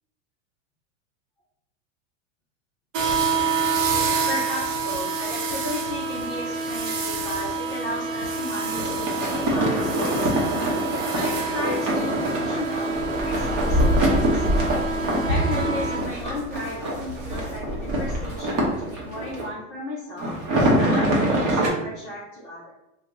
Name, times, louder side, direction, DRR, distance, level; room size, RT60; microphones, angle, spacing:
sound 1, 2.9-16.0, right 4 dB, 75° right, 0.7 m, -27 dB
voice 1, 4.3-10.6 11.1-14.8 15.3-20.4 20.8-22.7, left 1 dB, 20° left, -7 dB, 0.3 m, -35 dB
sound 2, 8.6-19.5 20.2-21.7, right 1 dB, 35° right, 0.8 m, -24 dB
2.9 x 2.1 x 3.5 m, 0.89 s
supercardioid pair, 155°, 40 cm